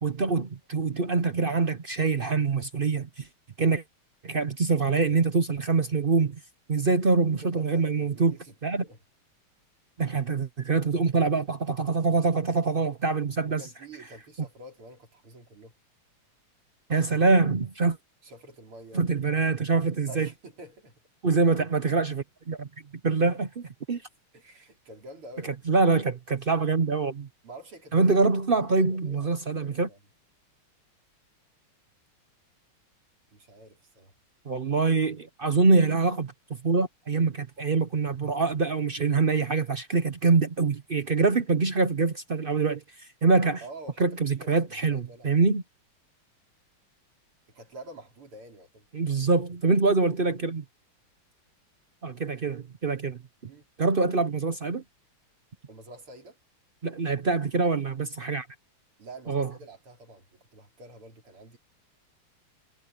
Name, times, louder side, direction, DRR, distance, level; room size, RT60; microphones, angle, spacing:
voice 1, 0.0-3.3 3.6-3.8 4.2-6.4 6.7-8.3 8.6-8.8 10.0-13.6 16.9-18.0 18.9-20.3 21.2-22.7 23.0-24.0 25.7-27.3 27.9-29.9 34.5-36.3 36.6-43.6 44.0-45.6 48.9-50.6 52.0-53.2 53.8-54.8 56.8-58.5 59.3-59.5, right 4 dB, 60° right, 0.5 m, -24 dB
voice 2, 7.3-9.0 13.5-15.7 18.2-19.0 20.1-20.9 24.3-25.8 27.4-30.0 33.3-34.1 43.6-45.4 47.5-48.9 53.4-53.7 55.7-56.4 59.0-61.6, right 1 dB, 85° right, 4.9 m, -48 dB
omnidirectional pair, 2.3 m